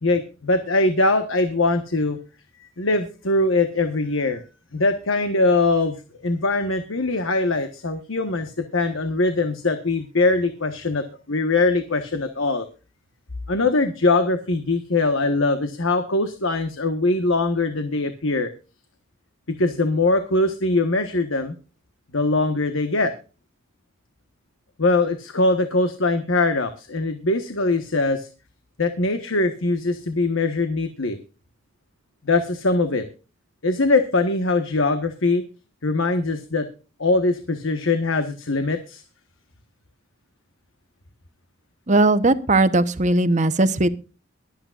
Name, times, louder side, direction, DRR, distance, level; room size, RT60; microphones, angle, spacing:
voice 1, 0.0-2.2 2.6-4.4 4.7-12.7 13.5-18.5 19.5-21.5 22.1-23.1 24.8-28.3 28.8-31.2 32.2-33.1 33.6-35.4 35.8-36.7 37.0-39.0, left 2 dB, 75° left, 8 dB, 1.3 m, -22 dB
voice 2, 41.9-43.9, right 2 dB, 35° right, 12 dB, 1.0 m, -18 dB
23.0 x 8.8 x 2.5 m, 0.34 s
head